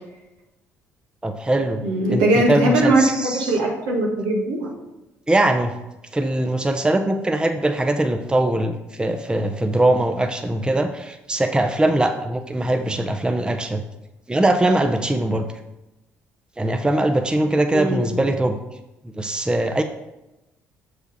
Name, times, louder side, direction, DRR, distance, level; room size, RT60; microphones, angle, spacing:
voice 1, 1.2-1.8 2.1-3.5 5.3-5.7 6.1-13.8 14.3-15.5 16.6-18.6 19.2-19.8, right 1 dB, 15° right, 6 dB, 0.7 m, -21 dB
voice 2, 1.8-4.7 17.7-18.1, right 1 dB, 75° right, -1 dB, 1.5 m, -20 dB
6.8 x 4.9 x 4.1 m, 0.98 s
hypercardioid pair, 50°, 7 cm